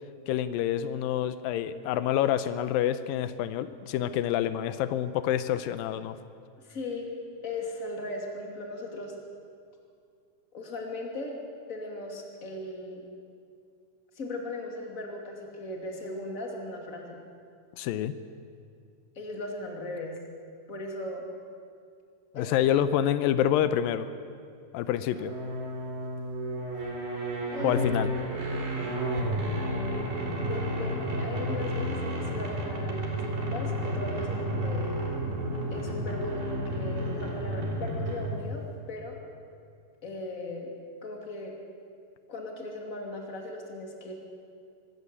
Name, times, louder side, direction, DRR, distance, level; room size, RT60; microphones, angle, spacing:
voice 1, 0.3-6.2 17.8-18.1 22.3-24.1 24.7-25.3 27.6-28.1, left 11 dB, 85° left, 12 dB, 2.4 m, -27 dB
voice 2, 6.6-7.2 7.4-9.1 10.5-11.4 11.7-13.1 14.1-17.2 19.2-20.2 20.7-21.2 22.3-22.5 27.5-27.9 28.3-28.5 30.4-34.9 35.7-39.2 40.0-40.7 41.0-41.6 42.3-44.1, left 2 dB, 25° left, 1 dB, 2.7 m, -38 dB
sound 1, 25.1-38.5, equal, 80° right, 5.7 m, -31 dB
24.0 x 13.5 x 8.3 m, 2.3 s
omnidirectional pair, 4.0 m